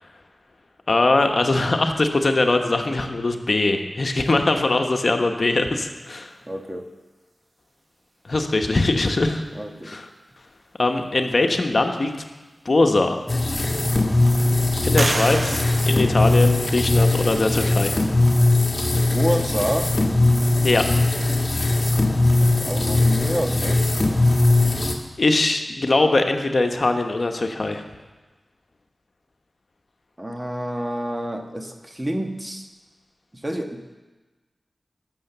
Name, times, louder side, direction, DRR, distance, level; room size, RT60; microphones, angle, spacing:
voice 1, 0.9-6.3 8.2-9.4 9.8-10.1 10.8-12.1 12.6-13.2 14.8-18.0 20.6-20.9 25.2-27.8, left 2 dB, 60° left, 5 dB, 1.0 m, -21 dB
voice 2, 6.5-6.9 9.5-10.0 18.9-19.9 22.4-23.8 30.2-32.7 33.4-33.8, equal, 25° right, 4 dB, 1.4 m, -28 dB
sound 1, 12.7-12.8 13.4-14.0 15.0-16.9, right 2 dB, 50° right, 0.7 m, -30 dB
sound 2, 13.3-24.9, left 2 dB, 35° left, 1.8 m, -20 dB
11.5 x 7.6 x 6.8 m, 1.2 s
cardioid pair, 40°, 0 cm